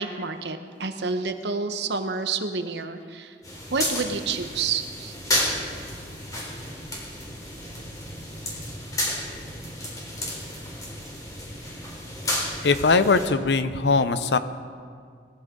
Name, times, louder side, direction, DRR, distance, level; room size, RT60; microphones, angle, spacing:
voice 1, 0.0-3.4 3.7-5.2, right 4 dB, 70° right, 7 dB, 0.9 m, -29 dB
sound 1, 3.4-13.3, left 1 dB, 20° left, 3.5 m, -32 dB
voice 2, 12.6-14.4, left 4 dB, 70° left, 12 dB, 0.7 m, -20 dB
19.5 x 14.5 x 3.8 m, 2.1 s
head